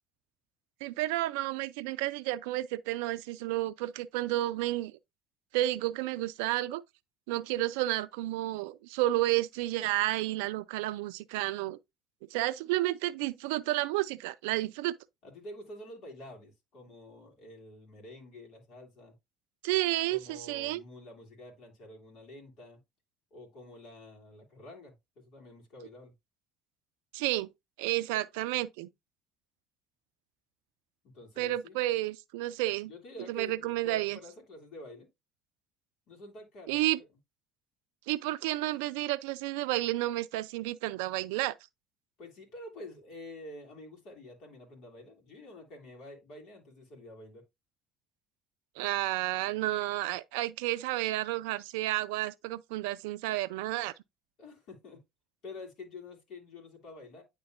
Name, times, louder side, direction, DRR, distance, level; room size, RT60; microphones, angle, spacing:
voice 1, 0.8-4.9 5.5-6.8 7.3-11.8 12.3-14.9 19.6-20.8 27.1-27.5 27.8-28.9 31.4-32.9 33.3-34.2 36.7-37.0 38.1-41.5 48.8-53.9, right 16 dB, 65° right, 0.4 m, -31 dB
voice 2, 15.2-19.1 20.1-22.8 23.3-26.1 31.0-31.8 32.9-35.1 36.1-37.1 42.2-47.4 54.4-55.0 55.4-57.2, left 2 dB, 55° left, 2.8 m, -48 dB
9.7 x 3.7 x 2.6 m
figure-of-eight pair, 60°, 0 cm